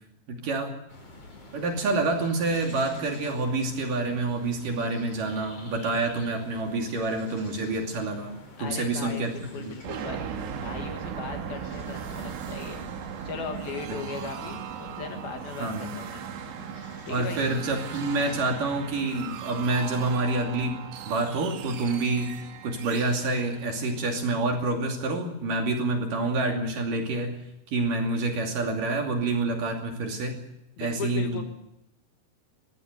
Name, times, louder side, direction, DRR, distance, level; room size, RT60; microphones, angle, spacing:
voice 1, 0.3-0.7 1.5-8.3 8.6-9.8 13.9-14.0 15.6-15.9 17.1-20.8 21.1-22.3 22.6-27.4 27.7-30.3 30.8-31.4, right 2 dB, 50° right, 2 dB, 3.9 m, -27 dB
sound 1, 0.9-19.4, left 1 dB, 40° left, 6.3 m, -48 dB
voice 2, 8.6-10.2 10.6-12.8 13.2-16.2 17.1-17.4 30.8-31.4, left 6 dB, 60° left, 5 dB, 3.3 m, -38 dB
sound 2, 9.8-24.5, right 8 dB, 75° right, 3.6 m, -38 dB
21.5 x 15.0 x 8.0 m, 0.83 s
omnidirectional pair, 5.2 m